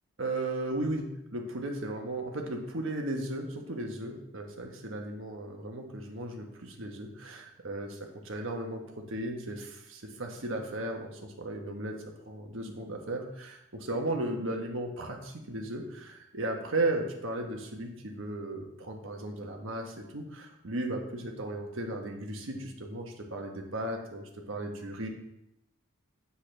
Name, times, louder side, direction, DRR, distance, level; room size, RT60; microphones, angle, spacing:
voice 1, 0.2-8.0 8.2-12.0 12.3-25.1, right 2 dB, 70° right, 2 dB, 1.2 m, -35 dB
8.3 x 7.1 x 3.3 m, 0.83 s
head